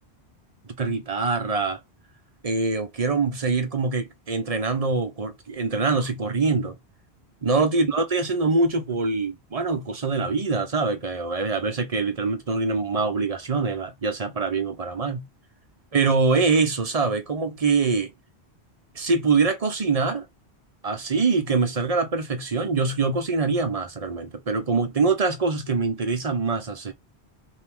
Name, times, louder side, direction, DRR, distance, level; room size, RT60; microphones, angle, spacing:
voice 1, 0.8-1.8 2.4-6.8 7.4-15.2 15.9-18.1 18.9-20.3 20.8-26.9, right 4 dB, 40° right, 0.7 m, -24 dB
3.5 x 2.7 x 4.4 m
omnidirectional pair, 1.1 m